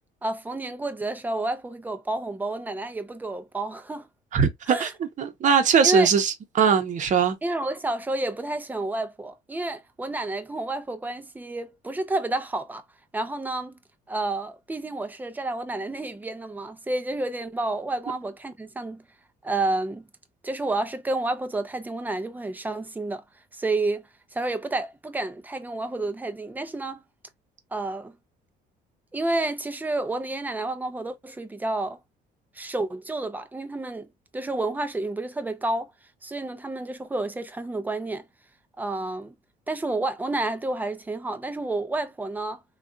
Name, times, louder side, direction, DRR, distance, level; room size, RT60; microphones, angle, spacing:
voice 1, 0.2-4.1 4.7-4.9 5.8-6.1 7.4-12.8 13.1-13.7 14.1-19.0 19.4-20.1 20.4-23.2 23.5-24.0 24.3-27.0 27.7-28.2 29.1-32.0 32.5-34.1 34.3-35.9 36.2-38.3 38.8-39.3 39.7-42.6, right 2 dB, 10° right, 0.5 m, -30 dB
voice 2, 4.3-4.9 5.2-7.4, right 6 dB, 45° right, 0.9 m, -21 dB
3.4 x 2.4 x 2.6 m
cardioid pair, 110°, 17 cm